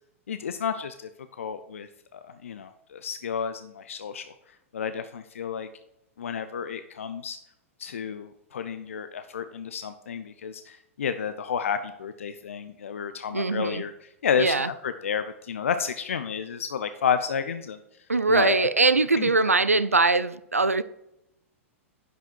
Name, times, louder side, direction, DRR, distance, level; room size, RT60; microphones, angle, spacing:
voice 1, 0.3-1.1 1.4-4.3 4.7-5.7 6.2-7.4 7.8-13.9 14.2-17.8 18.3-18.7 19.2-19.3, left 7 dB, 65° left, 0.6 m, -31 dB
voice 2, 13.3-13.8 14.4-14.7 18.1-20.8, right 3 dB, 85° right, 0.5 m, -22 dB
10.5 x 5.6 x 4.5 m
figure-of-eight pair, 100°, 7 cm